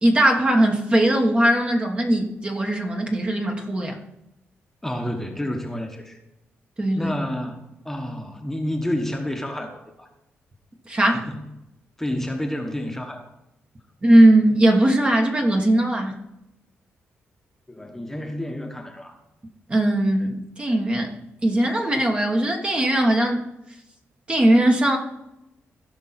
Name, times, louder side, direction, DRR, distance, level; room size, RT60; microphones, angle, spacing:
voice 1, 0.0-4.0 6.8-7.1 10.9-11.2 14.0-16.2 19.7-23.4 24.3-25.0, right 1 dB, 25° right, 3 dB, 1.3 m, -19 dB
voice 2, 4.8-6.2 6.9-10.1 11.1-11.4 12.0-13.3 17.7-19.2, left 1 dB, 5° left, 3 dB, 1.2 m, -30 dB
16.0 x 5.5 x 4.3 m, 0.88 s
cardioid pair, 115°, 5 cm